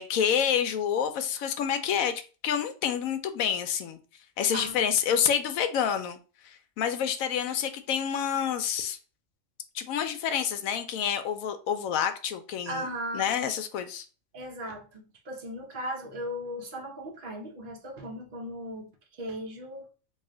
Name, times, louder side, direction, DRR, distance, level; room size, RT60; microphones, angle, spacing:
voice 1, 0.0-2.1 2.4-4.0 4.4-6.2 6.4-9.0 9.7-12.9 13.1-14.0, left 8 dB, 80° left, 1.0 m, -28 dB
voice 2, 4.5-5.2 12.7-13.3 14.3-18.9 19.2-19.8, equal, 45° right, 0.9 m, -37 dB
3.2 x 2.7 x 3.7 m
omnidirectional pair, 1.4 m